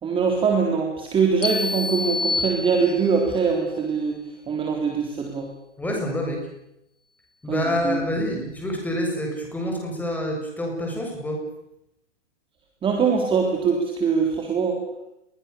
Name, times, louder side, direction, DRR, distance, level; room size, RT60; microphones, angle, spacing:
voice 1, 0.0-4.2 4.5-5.5 7.5-8.0 12.8-14.8, right 5 dB, 15° right, 2 dB, 3.7 m, -23 dB
sound 1, 1.4-3.3, left 3 dB, 85° left, 2.6 m, -27 dB
voice 2, 5.8-6.5 7.4-11.4, equal, 5° left, 0 dB, 7.2 m, -27 dB
29.0 x 22.0 x 7.0 m, 0.86 s
hypercardioid pair, 135°, 36 cm